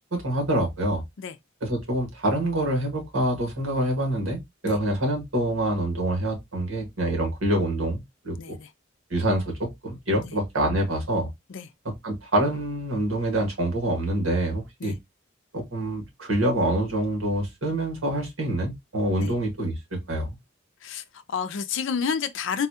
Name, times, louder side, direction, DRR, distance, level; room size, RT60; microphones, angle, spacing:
voice 1, 0.1-1.0 1.6-8.4 9.1-11.3 12.0-14.9 15.5-19.7 20.1-20.4, right 1 dB, 80° right, 1.5 m, -26 dB
voice 2, 8.4-8.7 10.1-10.4 11.5-11.7 14.8-15.0 19.2-19.3 20.8-22.7, left 6 dB, 65° left, 0.5 m, -30 dB
4.0 x 2.3 x 2.8 m
head